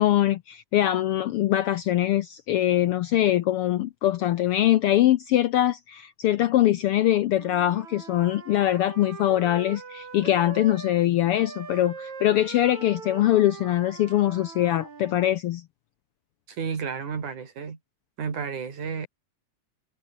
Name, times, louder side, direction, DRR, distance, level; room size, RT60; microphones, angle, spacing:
voice 1, 0.0-15.6, left 13 dB, 85° left, 1.3 m, -23 dB
Wind instrument woodwind instrument, 7.3-11.0 11.3-15.2, right 5 dB, 70° right, 5.5 m, -41 dB
voice 2, 16.5-17.8 18.2-19.1, right 6 dB, 85° right, 5.2 m, -32 dB
omnidirectional pair, 3.4 m